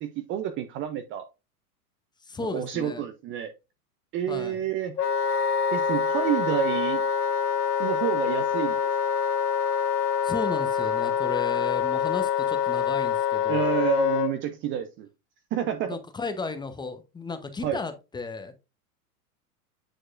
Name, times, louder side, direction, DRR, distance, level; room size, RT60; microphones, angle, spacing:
voice 1, 0.0-1.3 2.5-3.5 4.1-4.9 5.7-7.0 7.8-8.9 13.5-15.1 15.5-15.9 17.6-17.8, right 10 dB, 25° right, 0.5 m, -29 dB
voice 2, 2.2-3.1 4.3-4.7 10.2-13.8 15.9-18.5, left 3 dB, 10° left, 0.8 m, -34 dB
Wind instrument woodwind instrument, 5.0-14.3, left 7 dB, 80° left, 1.3 m, -25 dB
8.9 x 4.6 x 2.5 m
hypercardioid pair, 110°, 46 cm